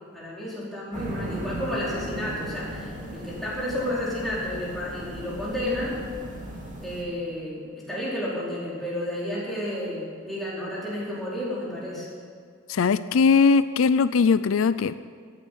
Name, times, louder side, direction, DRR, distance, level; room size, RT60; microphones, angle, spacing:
voice 1, 0.1-6.0 6.8-12.1, left 1 dB, ahead, -8 dB, 4.7 m, -31 dB
sound 1, 0.9-7.0, equal, 40° right, 2.5 m, -37 dB
voice 2, 12.7-15.0, left 5 dB, 75° left, 14 dB, 0.4 m, -20 dB
14.5 x 9.0 x 9.5 m, 2.1 s
head